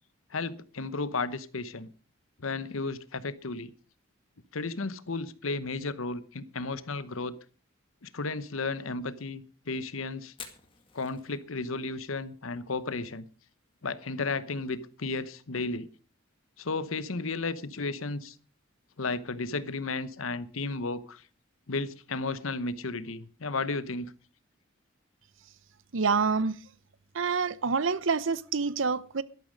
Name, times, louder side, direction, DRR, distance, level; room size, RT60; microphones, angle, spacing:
voice 1, 0.3-1.9 2.4-3.7 4.5-7.3 8.0-10.3 10.9-13.3 13.8-15.9 16.6-18.4 19.0-21.2 21.7-24.1, left 3 dB, 80° left, 1.0 m, -33 dB
Fire, 10.3-24.1, left 6 dB, 25° left, 1.9 m, -58 dB
voice 2, 25.9-26.6 27.1-29.2, right 5 dB, 65° right, 0.7 m, -27 dB
12.5 x 12.0 x 5.1 m
head